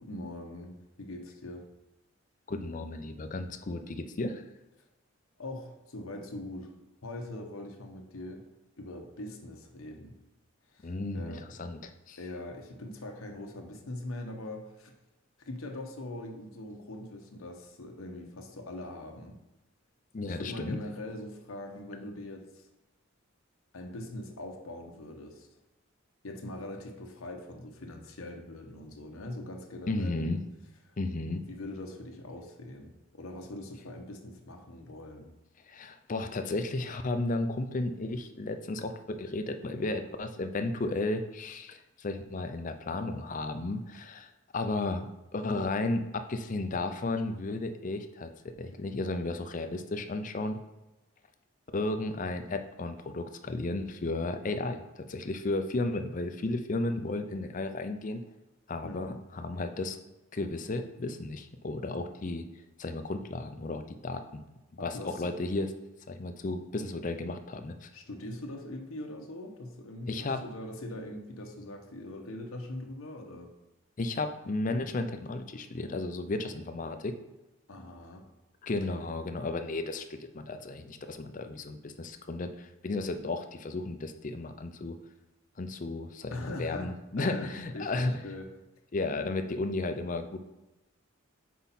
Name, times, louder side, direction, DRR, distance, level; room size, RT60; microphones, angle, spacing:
voice 1, 0.0-1.6 5.4-6.7 7.0-8.4 8.8-10.2 10.7-11.4 12.2-14.9 15.4-19.4 20.3-22.7 23.7-25.6 26.2-30.3 30.9-31.0 31.5-35.3 58.8-59.2 64.8-65.2 67.9-73.5 77.7-78.2 86.3-88.5, left 1 dB, 80° left, 3 dB, 0.9 m, -42 dB
voice 2, 2.5-4.4 10.8-12.2 20.1-20.8 29.9-30.4 31.0-31.4 35.7-45.1 45.3-48.3 48.6-50.6 51.7-58.2 58.7-60.0 60.3-62.4 62.8-64.4 64.8-65.7 66.1-67.9 70.1-70.4 74.0-77.1 78.6-85.0 85.6-88.2 88.9-90.4, left 2 dB, 40° left, 8 dB, 0.5 m, -34 dB
5.7 x 4.7 x 4.1 m, 0.99 s
head